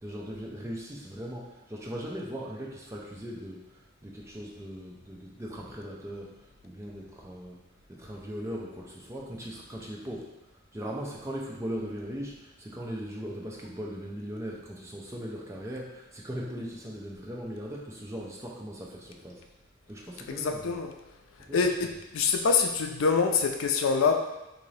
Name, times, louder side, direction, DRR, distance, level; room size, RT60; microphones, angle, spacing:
voice 1, 0.0-7.6 7.9-10.4 10.7-19.4 19.9-20.8 21.4-21.6, equal, 15° right, -2 dB, 0.5 m, -39 dB
voice 2, 20.3-20.9 21.5-24.1, left 5 dB, 90° left, 4 dB, 0.4 m, -25 dB
3.8 x 2.6 x 3.2 m, 0.98 s
head